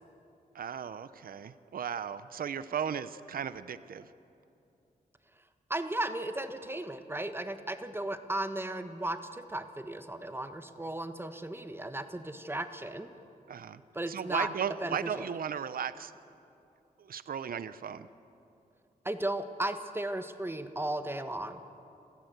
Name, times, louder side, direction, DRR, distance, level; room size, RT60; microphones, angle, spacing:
voice 1, 0.5-4.1 13.5-13.8 14.1-16.1 17.0-18.1, right 7 dB, 70° right, 14 dB, 0.7 m, -36 dB
voice 2, 5.7-13.1 13.9-14.5 14.8-15.3 19.0-21.6, right 1 dB, 15° right, 8 dB, 1.4 m, -35 dB
27.0 x 16.0 x 8.1 m, 2.7 s
cardioid pair, 80°, 15 cm